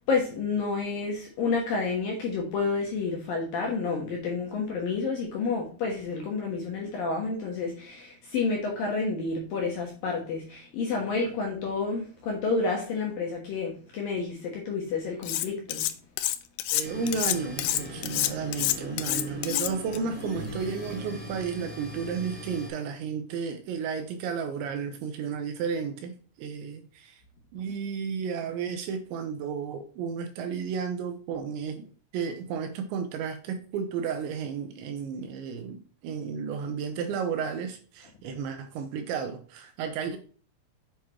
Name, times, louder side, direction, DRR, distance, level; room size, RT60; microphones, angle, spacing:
voice 1, 0.1-15.8, left 4 dB, 65° left, 2.4 m, -30 dB
Cutlery silverware, 15.2-15.9 16.2-20.0, left 15 dB, 85° left, 3.0 m, -28 dB
voice 2, 16.7-27.2 27.5-31.8 32.1-40.2, right 6 dB, 80° right, 2.8 m, -33 dB
sound 1, 16.8-22.7, left 1 dB, 5° right, 2.3 m, -39 dB
8.6 x 6.0 x 3.1 m
omnidirectional pair, 5.7 m